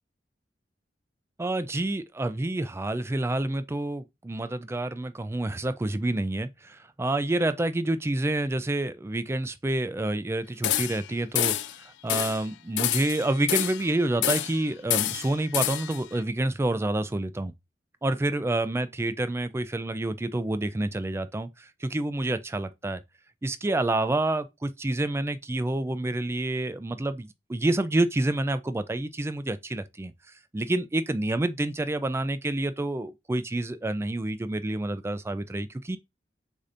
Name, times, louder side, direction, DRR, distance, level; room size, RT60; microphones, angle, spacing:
voice 1, 1.4-17.5 18.0-23.0 23.4-30.1 30.5-36.0, right 2 dB, 15° right, 0.3 m, -28 dB
sound 1, 10.6-11.1 11.3-11.7 12.1-12.4 12.8-13.9 14.2-14.6 14.9-16.0, left 13 dB, 75° left, 0.4 m, -27 dB
6.5 x 2.7 x 2.5 m
head